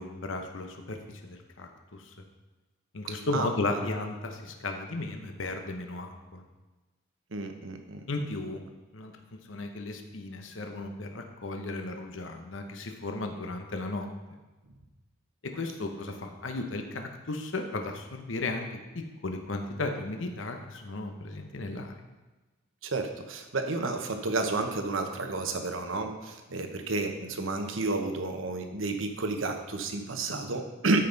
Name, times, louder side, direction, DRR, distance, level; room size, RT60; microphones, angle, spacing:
voice 1, 0.0-2.1 2.9-6.4 8.1-8.6 8.9-9.1 9.5-14.1 15.4-22.0, left 2 dB, 75° left, 4 dB, 0.9 m, -35 dB
voice 2, 3.3-3.8 7.3-8.0 22.8-31.0, right 3 dB, 85° right, 5 dB, 1.1 m, -31 dB
13.5 x 5.5 x 3.9 m, 1.2 s
head